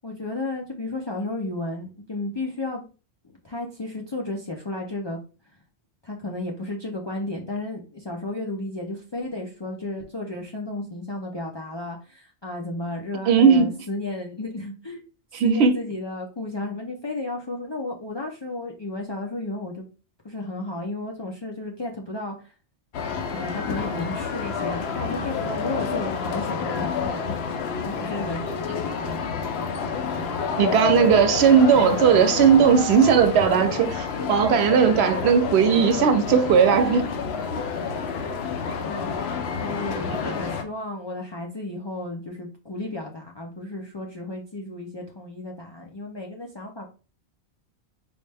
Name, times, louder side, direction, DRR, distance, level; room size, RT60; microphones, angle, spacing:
voice 1, 0.0-2.9 3.2-5.2 6.0-15.0 15.4-19.9 20.2-22.5 23.3-27.4 27.8-28.4 28.7-29.4 38.0-38.4 38.8-39.1 39.6-46.9, left 2 dB, 45° left, 0.3 m, -33 dB
voice 2, 13.3-13.8 15.3-15.8 30.5-37.1 40.2-40.3, right 7 dB, 80° right, 0.8 m, -18 dB
sound 1, 22.9-40.6, left 6 dB, 75° left, 0.8 m, -29 dB
4.1 x 2.1 x 3.3 m
omnidirectional pair, 1.1 m